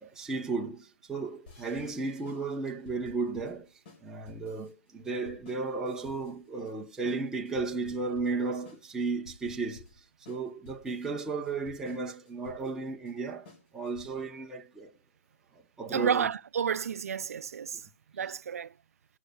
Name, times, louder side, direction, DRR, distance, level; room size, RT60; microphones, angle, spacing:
voice 1, 0.0-3.7 4.0-9.8 10.3-14.9 15.8-16.3, right 4 dB, 5° right, 0.7 m, -34 dB
sound 1, 1.5-14.3, left 4 dB, 45° left, 4.1 m, -54 dB
voice 2, 15.9-17.8 18.1-18.7, right 7 dB, 80° right, 0.4 m, -31 dB
18.5 x 6.2 x 2.2 m
hypercardioid pair, 150°, 8 cm